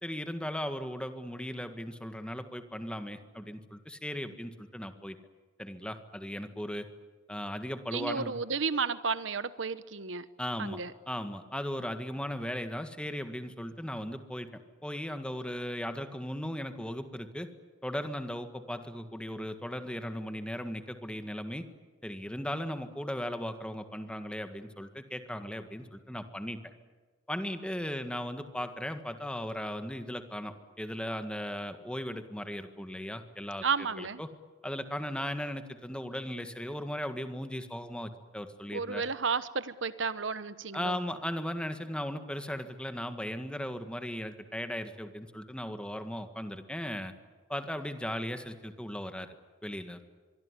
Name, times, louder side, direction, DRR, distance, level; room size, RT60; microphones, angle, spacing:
voice 1, 0.0-5.2 5.6-6.9 7.3-8.4 10.4-10.8 11.1-17.5 17.8-21.7 22.0-26.6 27.3-33.6 34.0-34.3 34.6-39.0 40.7-47.1 47.5-49.4 49.6-50.0, equal, 5° left, 8 dB, 1.7 m, -37 dB
voice 2, 7.9-10.3 10.6-10.9 33.6-34.2 38.7-41.0, right 5 dB, 80° right, 14 dB, 1.1 m, -32 dB
24.5 x 23.5 x 9.9 m, 1.4 s
head